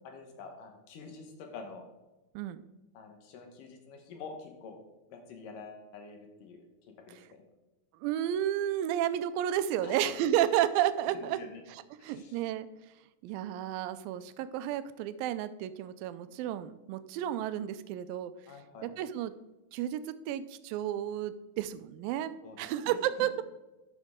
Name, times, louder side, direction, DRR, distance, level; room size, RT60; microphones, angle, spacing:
voice 1, 0.0-1.8 2.9-4.8 5.1-7.4 9.8-10.1 11.1-11.6 12.0-12.4 18.5-18.9 22.4-23.4, left 4 dB, 70° left, 4 dB, 2.6 m, -47 dB
voice 2, 8.0-11.4 12.0-12.7 13.2-18.3 18.8-19.3 19.7-22.3 22.6-23.4, right 11 dB, 85° right, 13 dB, 2.3 m, -31 dB
11.5 x 6.4 x 3.6 m, 1.1 s
omnidirectional pair, 4.1 m